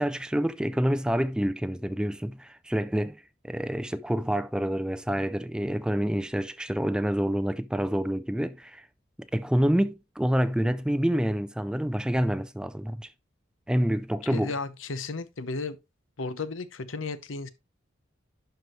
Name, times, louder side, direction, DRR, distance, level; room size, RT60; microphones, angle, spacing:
voice 1, 0.0-8.9 9.3-13.1 13.7-14.5, equal, 5° right, 0.3 m, -27 dB
voice 2, 14.2-15.8 16.2-17.5, left 3 dB, 85° left, 0.8 m, -34 dB
11.5 x 4.6 x 3.1 m
head